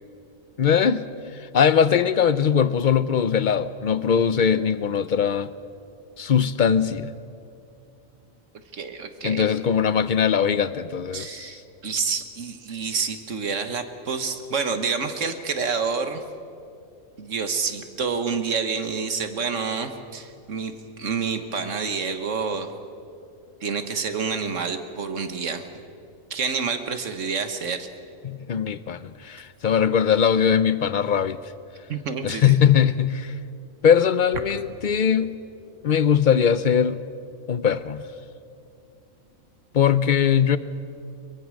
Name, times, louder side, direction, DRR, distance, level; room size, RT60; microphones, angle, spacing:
voice 1, 0.6-1.0 1.5-5.5 6.2-7.1 9.2-11.5 28.2-31.4 32.2-33.3 33.8-35.4 35.8-37.0 37.5-38.0 39.7-40.6, left 8 dB, 50° left, 15 dB, 0.6 m, -20 dB
voice 2, 8.7-9.5 11.1-16.2 17.2-20.7 21.0-22.7 23.6-25.7 26.3-27.9 31.9-32.7, right 5 dB, 65° right, 8 dB, 1.7 m, -28 dB
23.0 x 22.5 x 6.5 m, 2.5 s
omnidirectional pair, 1.4 m